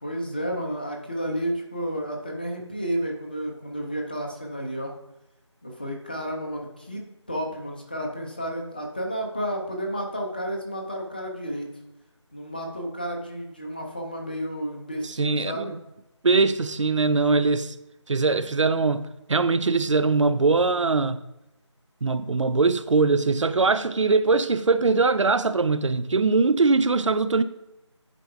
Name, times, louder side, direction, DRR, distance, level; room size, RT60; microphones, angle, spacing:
voice 1, 0.0-4.9 5.6-11.7 12.3-15.7, equal, 20° left, 0.5 m, -31 dB
voice 2, 15.0-15.8 16.2-17.7 18.1-21.2 22.0-27.4, right 3 dB, 75° right, 0.5 m, -22 dB
11.0 x 4.4 x 2.3 m
figure-of-eight pair, 165°, 16 cm